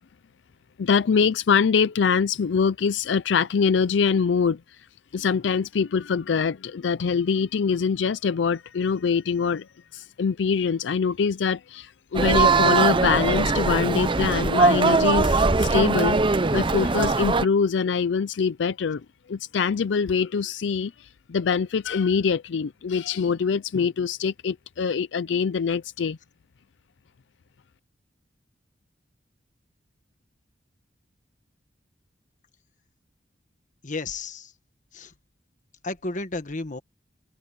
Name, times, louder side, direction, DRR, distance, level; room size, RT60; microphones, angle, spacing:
voice 1, 0.8-4.6 5.1-9.7 9.9-19.0 19.3-26.2, left 6 dB, 75° left, 0.4 m, -24 dB
sound 1, 12.1-17.4, right 3 dB, 30° right, 0.7 m, -21 dB
voice 2, 33.8-34.5 34.9-35.1 35.8-36.8, left 3 dB, 45° left, 1.5 m, -32 dB
open air
head